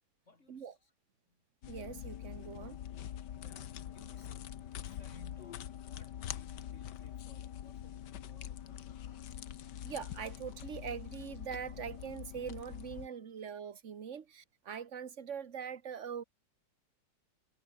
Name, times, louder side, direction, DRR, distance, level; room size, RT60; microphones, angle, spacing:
voice 1, 0.3-0.9 1.3-1.4 3.4-9.4 13.1-13.3, left 2 dB, 35° left, 4.4 m, -61 dB
sound 1, 1.6-13.1, left 10 dB, 65° left, 1.6 m, -44 dB
voice 2, 1.7-2.8 9.8-16.2, right 7 dB, 40° right, 1.5 m, -42 dB
omnidirectional pair, 2.1 m